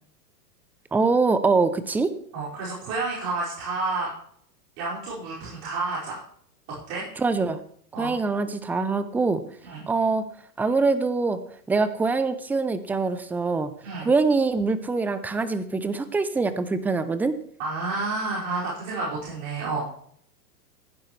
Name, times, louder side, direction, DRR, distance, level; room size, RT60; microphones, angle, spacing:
voice 1, 0.9-2.1 7.2-7.6 8.0-9.4 9.9-10.3 10.6-11.4 11.7-13.7 14.1-17.4, right 4 dB, 5° right, 12 dB, 0.5 m, -24 dB
voice 2, 2.3-4.1 4.8-6.2 6.9-7.1 7.9-8.2 9.6-9.9 13.8-14.1 17.6-20.0, right 3 dB, 55° right, -8 dB, 5.5 m, -30 dB
16.0 x 10.5 x 3.2 m, 0.62 s
hypercardioid pair, 110°, 47 cm